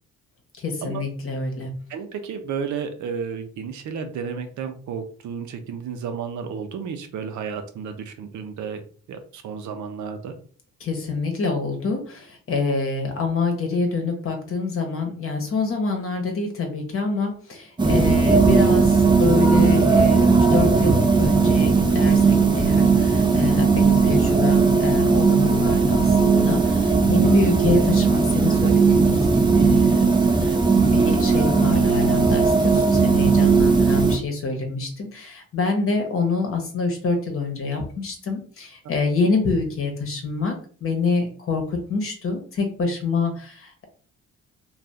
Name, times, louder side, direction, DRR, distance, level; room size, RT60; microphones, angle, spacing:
voice 1, 0.6-1.7 10.8-29.3 29.5-40.5 40.8-43.8, left 4 dB, 45° left, 3 dB, 1.0 m, -26 dB
voice 2, 1.9-8.8 9.1-10.3 27.3-27.4, right 6 dB, 70° right, 7 dB, 0.6 m, -32 dB
sound 1, 17.8-34.2, right 4 dB, 15° right, 0.6 m, -17 dB
2.6 x 2.4 x 3.3 m, 0.43 s
cardioid pair, 90°, 30 cm